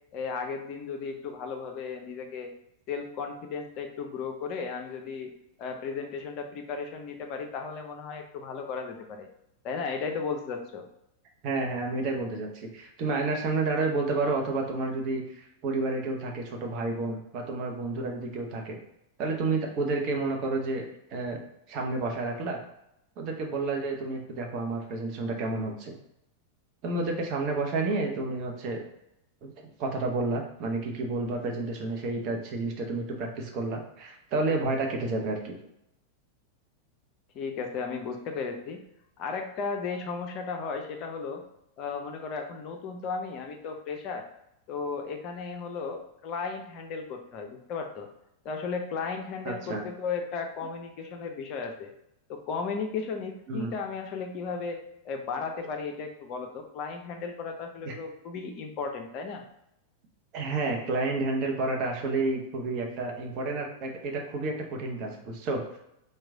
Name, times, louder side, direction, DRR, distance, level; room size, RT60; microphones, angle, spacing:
voice 1, 0.1-2.5 2.9-5.3 5.6-9.3 9.6-10.8 37.3-38.8 39.2-41.4 41.8-44.3 44.7-48.1 48.4-51.9 52.3-54.8 55.0-59.4, left 5 dB, 40° left, 4 dB, 0.5 m, -35 dB
voice 2, 11.4-18.8 19.2-20.9 21.1-21.4 21.7-22.6 23.2-26.0 26.8-28.8 29.4-29.5 29.8-35.5 49.4-49.8 53.5-53.7 57.8-58.0 60.3-65.6, right 3 dB, 40° right, 1 dB, 0.8 m, -30 dB
4.6 x 2.2 x 3.6 m, 0.81 s
figure-of-eight pair, 90°, 0 cm